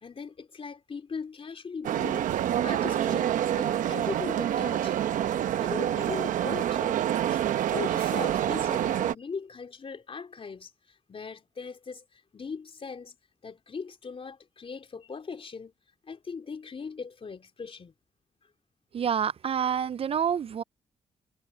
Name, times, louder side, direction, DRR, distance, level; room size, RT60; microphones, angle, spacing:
voice 1, 0.0-2.3 2.6-5.0 5.6-7.0 7.3-13.1 13.4-15.7 16.0-17.9, left 5 dB, 45° left, 3.4 m, -39 dB
sound 1, 1.8-9.1, right 11 dB, 85° right, 0.9 m, -27 dB
voice 2, 18.9-20.6, right 8 dB, 45° right, 0.4 m, -27 dB
cardioid pair, 75°, 13 cm